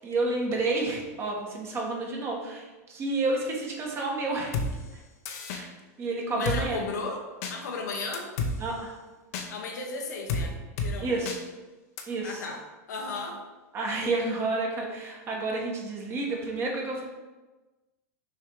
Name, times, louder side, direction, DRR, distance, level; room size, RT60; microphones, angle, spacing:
voice 1, 0.0-4.5 5.5-5.7 6.0-6.8 8.6-9.0 11.0-11.4 12.1-12.4 13.7-17.0, right 2 dB, 25° right, -1 dB, 1.4 m, -30 dB
Drum kit, 4.5-4.7 5.3-5.6 6.5-6.6 7.4-7.5 8.1-8.5 9.3-9.5 10.3-10.4 10.8-10.9 11.3-11.4 12.0-12.1, left 4 dB, 65° left, 0.9 m, -29 dB
voice 2, 6.3-7.2 7.5-8.3 9.5-11.3 12.2-12.6 12.9-13.4, left 3 dB, 90° left, 1 dB, 1.3 m, -35 dB
6.4 x 3.4 x 4.8 m, 1.2 s
supercardioid pair, 135°, 9 cm